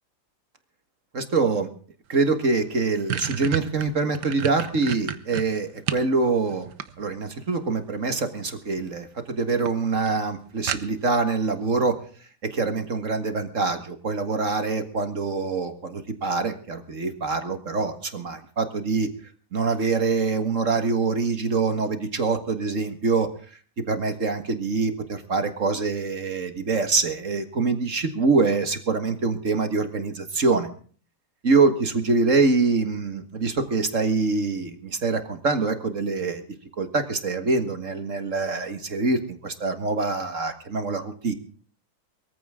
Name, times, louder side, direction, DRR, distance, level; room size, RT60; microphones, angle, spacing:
voice 1, 1.1-1.7 2.1-6.7 7.0-12.0 12.5-19.1 19.5-23.3 23.9-30.7 31.4-36.4 36.8-41.3, right 4 dB, 45° right, 8 dB, 2.0 m, -25 dB
sound 1, 2.2-2.3 2.6-6.1 6.5-7.4 8.5-8.9 9.2-9.3 9.7-9.8 10.1-10.2 10.7-11.2, right 9 dB, 70° right, 1.6 m, -31 dB
22.5 x 15.0 x 3.7 m, 0.43 s
omnidirectional pair, 2.0 m